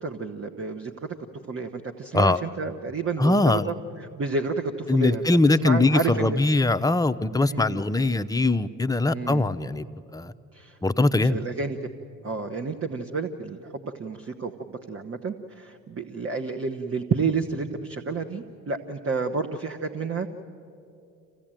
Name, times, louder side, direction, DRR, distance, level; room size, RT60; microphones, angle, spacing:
voice 1, 0.0-0.9 1.5-3.7 4.1-5.2 5.6-6.4 7.5-7.8 9.1-9.5 10.5-10.7 11.3-11.8 12.2-20.3, right 4 dB, 30° right, 4 dB, 1.3 m, -30 dB
voice 2, 3.2-3.7 4.9-9.9 10.1-10.3 10.8-11.4, left 2 dB, 10° left, 8 dB, 0.7 m, -22 dB
26.5 x 16.5 x 9.0 m, 2.6 s
hypercardioid pair, 65°, 43 cm